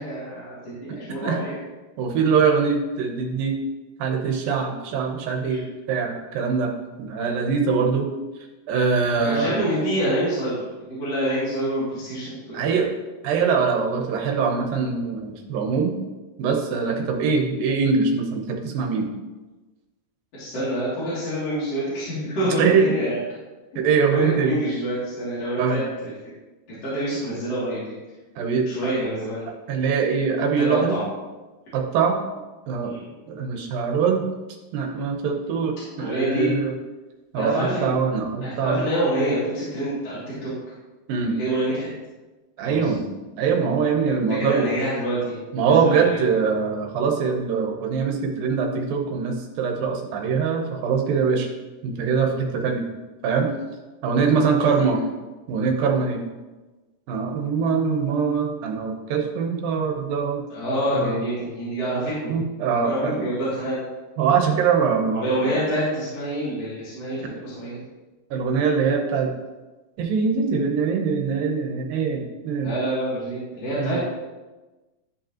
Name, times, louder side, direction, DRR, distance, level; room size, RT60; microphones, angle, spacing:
voice 1, 0.0-1.6 5.5-5.6 9.2-10.6 10.9-12.7 20.4-23.2 24.1-26.1 26.8-27.9 28.7-29.4 30.6-31.0 32.8-33.1 35.9-36.5 37.4-37.9 38.4-40.5 41.2-41.9 42.6-42.9 44.1-46.2 54.5-54.9 60.5-62.3 62.8-63.8 65.0-67.8 72.6-74.1, right 1 dB, 45° left, -12 dB, 3.6 m, -27 dB
voice 2, 2.0-3.6 4.0-6.7 7.0-8.1 8.7-9.6 12.5-12.9 13.2-16.0 16.4-19.1 22.5-23.0 23.8-24.5 25.6-25.8 28.4-28.9 29.7-31.0 31.7-32.2 32.7-32.9 33.3-34.3 34.7-36.8 37.3-38.8 41.1-41.4 42.6-43.0 43.4-44.7 45.5-51.5 51.8-52.8 53.2-53.5 54.0-55.0 55.5-56.2 57.1-60.4 60.9-61.2 62.3-63.1 64.2-65.4 68.3-69.3 70.0-72.7 73.8-74.0, right 5 dB, 85° right, 2 dB, 2.8 m, -23 dB
13.0 x 5.2 x 2.9 m, 1.2 s
omnidirectional pair, 4.0 m